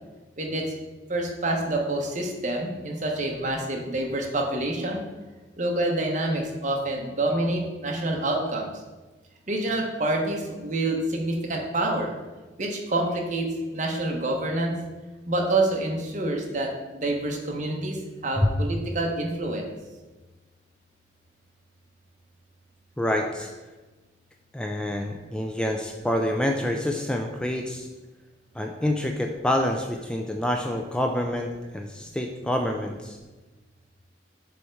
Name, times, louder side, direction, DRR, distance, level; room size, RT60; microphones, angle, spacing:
voice 1, 0.4-0.7 1.1-5.0 5.6-8.7 9.5-12.1 12.6-13.5 13.7-14.7 15.3-18.0 18.2-19.7, right 2 dB, 45° right, 1 dB, 1.0 m, -27 dB
voice 2, 23.0-23.5 24.5-27.9 28.5-33.2, left 1 dB, 5° left, 2 dB, 0.3 m, -27 dB
7.1 x 3.5 x 4.4 m, 1.2 s
head